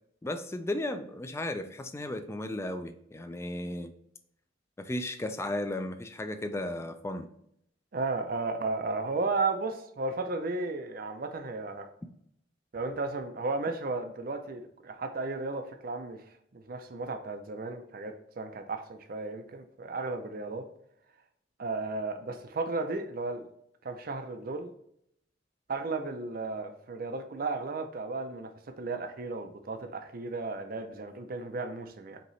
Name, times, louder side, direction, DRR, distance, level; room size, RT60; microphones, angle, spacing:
voice 1, 0.2-3.9 4.8-7.3, left 1 dB, 15° left, 8 dB, 0.4 m, -35 dB
voice 2, 7.9-11.9 12.7-16.2 16.5-20.6 21.6-23.5 23.8-24.7 25.7-28.5 28.8-32.2, right 3 dB, 50° right, 6 dB, 0.5 m, -34 dB
5.3 x 2.9 x 3.1 m, 0.72 s
head